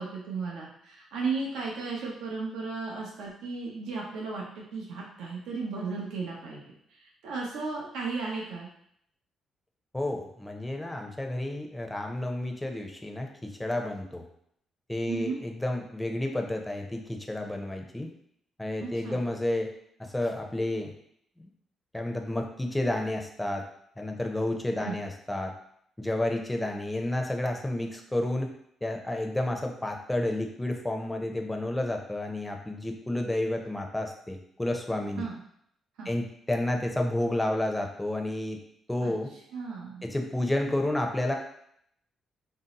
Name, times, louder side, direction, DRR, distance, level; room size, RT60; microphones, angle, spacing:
voice 1, 0.0-6.6 6.9-8.7 15.1-15.4 18.8-19.2 24.8-25.0 35.2-35.4 36.0-36.1 39.0-39.1 39.5-40.0, right 4 dB, 85° right, -3 dB, 0.6 m, -35 dB
voice 2, 9.9-14.2 14.9-18.1 18.6-19.7 20.0-20.9 21.4-21.5 21.9-23.6 24.0-25.5 26.0-28.5 28.8-35.3 36.1-38.6 38.9-39.3 40.0-41.3, left 1 dB, 10° left, 3 dB, 0.5 m, -31 dB
2.6 x 2.0 x 3.9 m, 0.70 s
cardioid pair, 90°, 0 cm